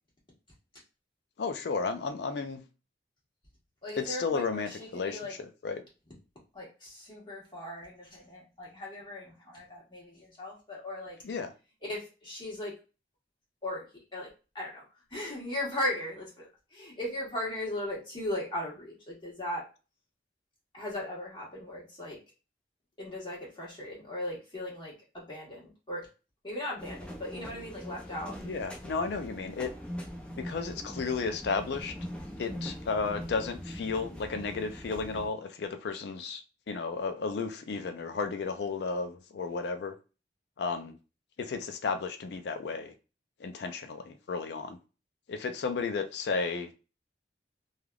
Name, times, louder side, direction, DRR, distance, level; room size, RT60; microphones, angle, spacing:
voice 1, 1.4-2.6 4.0-5.8 11.2-11.5 28.4-29.7 30.4-31.9 32.4-39.9 40.6-41.0 41.4-42.9 43.4-44.8 45.3-46.7, left 4 dB, 70° left, 0.4 m, -33 dB
voice 2, 3.8-5.3 6.5-11.2 11.8-12.7 13.6-13.8 14.1-14.3 14.5-14.8 15.1-19.6 20.7-22.2 23.0-26.1 26.4-28.4, left 1 dB, 25° left, 1.2 m, -38 dB
sound 1, 26.8-35.3, equal, 5° left, 0.4 m, -42 dB
3.2 x 2.3 x 2.3 m
head